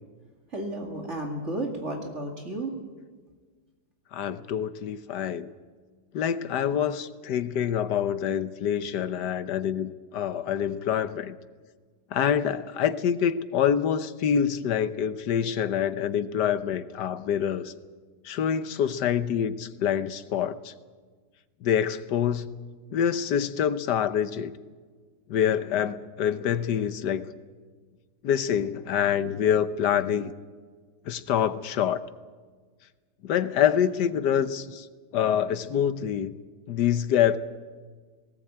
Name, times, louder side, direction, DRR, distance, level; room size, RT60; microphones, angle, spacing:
voice 1, 0.5-2.7, right 1 dB, 40° right, 2 dB, 2.5 m, -32 dB
voice 2, 4.1-5.5 6.1-11.3 12.1-17.7 18.2-20.7 21.6-22.5 22.9-24.5 25.3-27.2 28.2-30.3 31.1-32.0 33.2-34.9 35.1-36.3 36.7-37.4, left 9 dB, 75° left, 13 dB, 1.5 m, -26 dB
19.0 x 18.0 x 8.7 m, 1.5 s
omnidirectional pair, 1.9 m